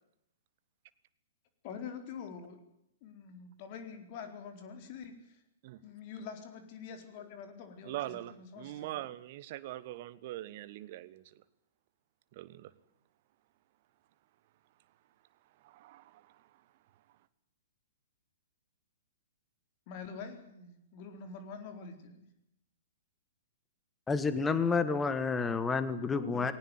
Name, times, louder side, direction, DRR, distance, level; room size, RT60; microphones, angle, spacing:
voice 1, 1.6-2.6 3.0-5.4 5.7-9.0 19.9-22.2 26.1-26.5, left 6 dB, 35° left, 7 dB, 4.2 m, -45 dB
voice 2, 7.8-11.4 12.3-12.7 15.6-16.5, right 15 dB, 40° right, 16 dB, 1.3 m, -42 dB
voice 3, 24.1-26.5, left 4 dB, 10° left, 13 dB, 1.8 m, -29 dB
20.5 x 18.5 x 9.4 m, 0.81 s
figure-of-eight pair, 115°, 0 cm